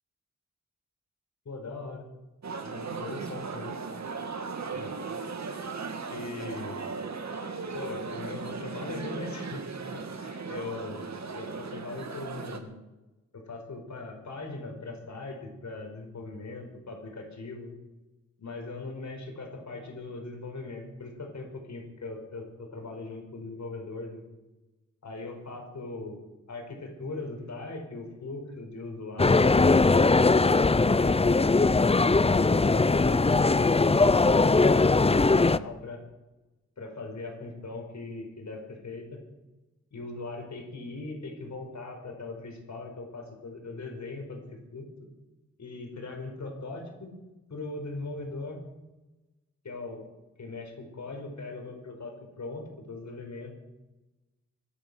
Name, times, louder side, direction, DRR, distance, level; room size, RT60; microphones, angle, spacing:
voice 1, 1.5-2.1 2.6-3.8 4.7-4.9 6.0-6.9 7.7-9.6 9.9-12.8 13.3-17.7 18.4-24.2 25.0-26.2 26.5-29.7 30.7-36.0 36.8-39.2 39.9-44.4 44.7-44.9 45.6-47.2 47.5-48.6 49.6-50.0 50.4-52.1 52.4-53.5, left 3 dB, 65° left, 2 dB, 5.2 m, -40 dB
sound 1, 2.4-12.6, right 4 dB, 60° right, 2.2 m, -37 dB
sound 2, 29.2-35.6, left 3 dB, 20° left, 0.6 m, -20 dB
24.0 x 8.6 x 6.3 m, 1.0 s
cardioid pair, 50°, 31 cm